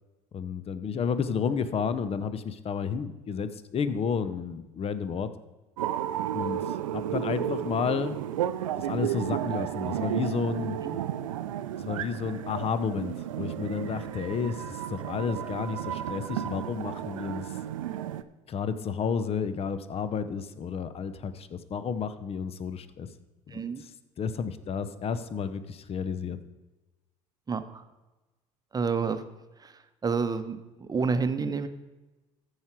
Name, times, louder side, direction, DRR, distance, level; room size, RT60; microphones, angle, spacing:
voice 1, 0.3-5.3 6.3-8.2 8.8-10.8 11.8-17.5 18.5-23.1 23.5-23.9 24.2-26.4, left 6 dB, 35° left, 13 dB, 0.8 m, -31 dB
sound 1, 5.8-18.2, right 11 dB, 85° right, 0.4 m, -33 dB
voice 2, 23.5-23.8 27.5-27.8 28.7-29.2 29.6-29.7 30.0-31.7, right 5 dB, 25° right, 10 dB, 0.9 m, -29 dB
14.0 x 4.9 x 4.6 m, 1.1 s
hypercardioid pair, 65°, 16 cm